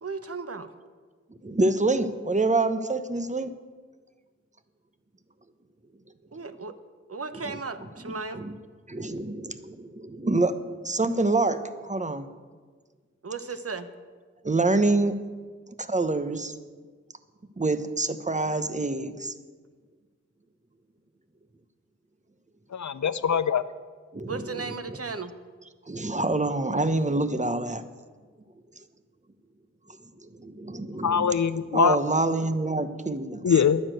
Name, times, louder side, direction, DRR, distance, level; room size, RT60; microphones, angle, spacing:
voice 1, 0.0-0.7 6.3-6.7 7.1-8.4 13.2-13.9 24.3-25.3, right 4 dB, 50° right, 10 dB, 1.0 m, -35 dB
voice 2, 1.4-3.6 7.4-7.6 8.1-8.5 8.9-10.6 10.8-12.3 14.4-15.2 15.8-16.5 17.6-19.3 24.1-24.6 24.9-25.0 25.9-27.8 29.9-31.3 31.7-33.6, right 2 dB, 25° right, 10 dB, 1.0 m, -26 dB
voice 3, 22.7-23.6 31.0-32.0 33.4-33.8, left 7 dB, 75° left, 14 dB, 0.6 m, -23 dB
11.0 x 9.7 x 7.7 m, 1.5 s
cardioid pair, 45°, 29 cm